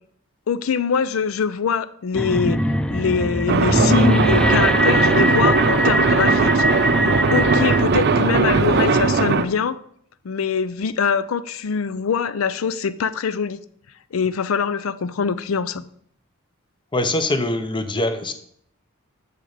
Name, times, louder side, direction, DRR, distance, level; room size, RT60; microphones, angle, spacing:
voice 1, 0.5-2.6 2.9-6.6 7.0-9.8 10.2-13.6 14.1-15.8, left 6 dB, 75° left, 0.5 m, -23 dB
sound 1, 2.1-7.8, equal, 5° left, 0.3 m, -21 dB
sound 2, 3.5-9.5, right 4 dB, 55° right, 0.6 m, -18 dB
voice 2, 16.9-18.3, left 2 dB, 25° left, 0.7 m, -23 dB
6.9 x 6.6 x 5.0 m
head